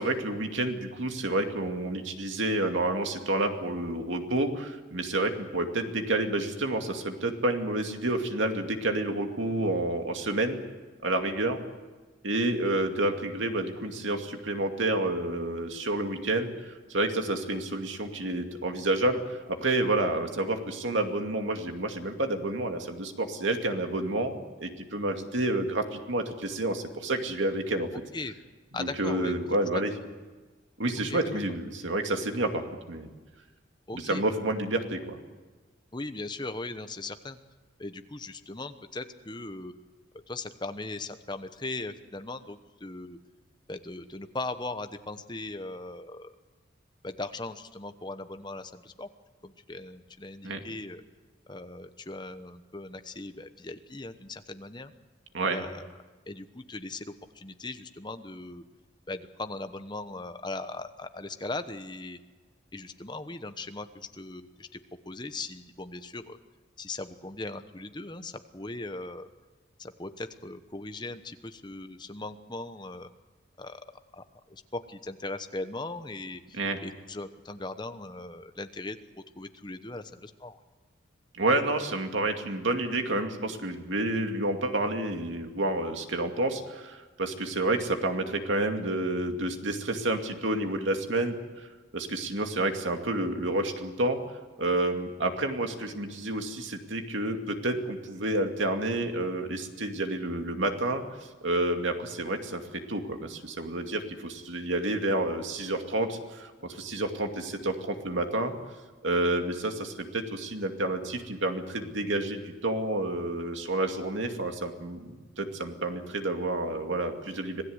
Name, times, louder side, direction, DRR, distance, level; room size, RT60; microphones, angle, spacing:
voice 1, 0.0-10.6 11.0-11.6 12.2-27.9 28.8-29.9 30.8-33.1 33.9-35.2 50.4-50.6 55.3-55.6 76.6-76.8 81.3-91.7 91.9-94.2 94.6-101.0 101.4-108.5 109.0-115.1 115.4-117.6, right 2 dB, 80° right, 5 dB, 2.4 m, -29 dB
voice 2, 27.9-28.3 28.7-29.4 29.7-29.8 31.1-31.3 33.9-34.2 35.9-37.4 37.8-39.7 40.3-43.2 43.7-46.3 47.0-49.1 49.4-51.0 51.5-54.9 55.5-55.9 56.3-58.6 59.1-62.2 62.7-64.7 65.0-66.4 66.8-69.3 69.8-73.1 73.6-73.8 74.1-74.2 74.5-80.6, left 2 dB, 20° left, 9 dB, 1.0 m, -39 dB
26.0 x 17.0 x 8.1 m, 1.3 s
head